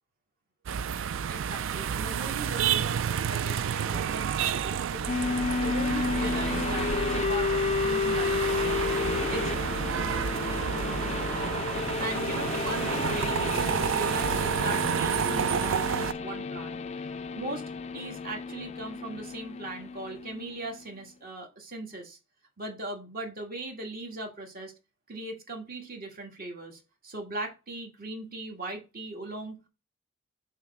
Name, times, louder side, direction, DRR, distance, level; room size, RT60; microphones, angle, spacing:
sound 1, 0.7-16.1, right 7 dB, 65° right, 0.4 m, -30 dB
voice 1, 1.3-8.8 9.2-9.5 12.0-22.2 22.6-24.7 25.1-29.6, right 2 dB, 45° right, 2 dB, 1.9 m, -39 dB
sound 2, 5.1-20.8, left 5 dB, 35° left, 0.3 m, -32 dB
7.1 x 3.2 x 5.8 m, 0.29 s
head